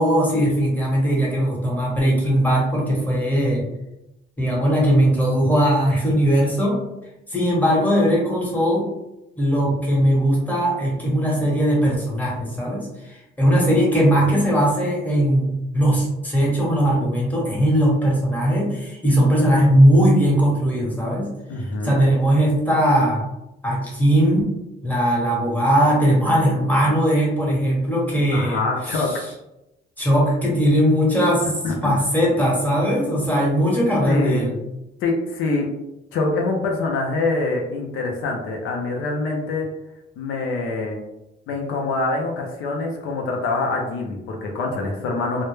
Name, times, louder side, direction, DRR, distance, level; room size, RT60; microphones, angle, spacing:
voice 1, 0.0-3.6 4.4-6.8 7.3-8.9 9.4-21.3 21.8-23.2 23.6-24.5 24.8-29.2 30.0-31.5 31.8-34.5, equal, 10° left, -4 dB, 1.0 m, -19 dB
voice 2, 21.5-22.0 28.3-29.1 31.6-32.0 34.1-34.5 35.0-35.7 36.1-39.7 40.2-41.0 41.5-45.4, left 3 dB, 85° left, 0 dB, 0.5 m, -25 dB
2.1 x 2.0 x 3.0 m, 0.91 s
cardioid pair, 90°, 20 cm